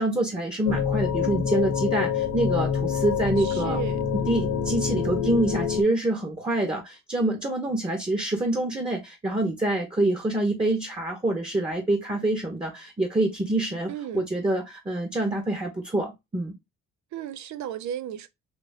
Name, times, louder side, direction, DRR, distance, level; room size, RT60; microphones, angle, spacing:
voice 1, 0.0-3.8 4.3-16.5, right 1 dB, 15° right, 1.0 m, -26 dB
sound 1, 0.7-5.8, left 7 dB, 70° left, 0.9 m, -26 dB
voice 2, 3.4-4.0 13.9-14.3 17.1-18.3, right 10 dB, 70° right, 0.6 m, -34 dB
3.5 x 2.8 x 2.5 m
cardioid pair, 90°, 30 cm